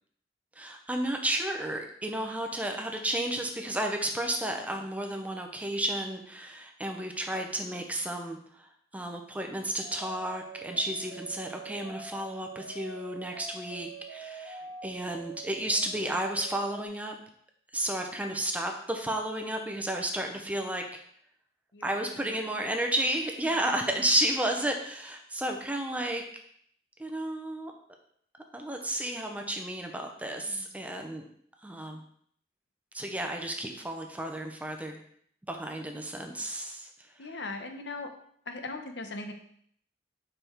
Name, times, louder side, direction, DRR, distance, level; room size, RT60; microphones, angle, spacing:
voice 1, 0.6-8.7 8.9-17.1 17.7-20.8 21.8-26.2 27.0-27.7 28.5-31.2 31.6-32.0 32.9-35.0 35.5-36.9, right 1 dB, 10° right, 3 dB, 0.8 m, -32 dB
voice 2, 2.5-2.8 18.2-18.3 19.9-20.0 21.7-22.7 23.5-23.9 30.4-30.7 37.2-38.1 38.5-39.3, left 3 dB, 80° left, 5 dB, 1.0 m, -41 dB
sound 1, 9.8-16.9, right 4 dB, 60° right, 1.5 m, -45 dB
6.8 x 5.1 x 4.5 m, 0.64 s
head